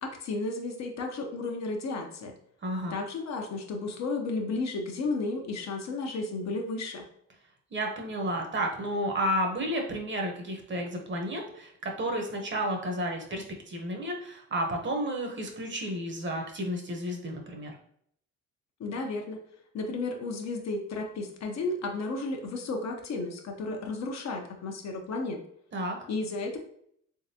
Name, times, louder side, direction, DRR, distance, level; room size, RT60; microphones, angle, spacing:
voice 1, 0.0-2.3 2.9-7.0 18.8-19.4 19.7-25.4 26.1-26.6, left 3 dB, 60° left, 2 dB, 0.9 m, -33 dB
voice 2, 2.6-3.0 7.7-17.8 25.7-26.0, equal, 40° right, 2 dB, 1.0 m, -32 dB
3.7 x 3.5 x 2.8 m, 0.68 s
cardioid pair, 90°, 30 cm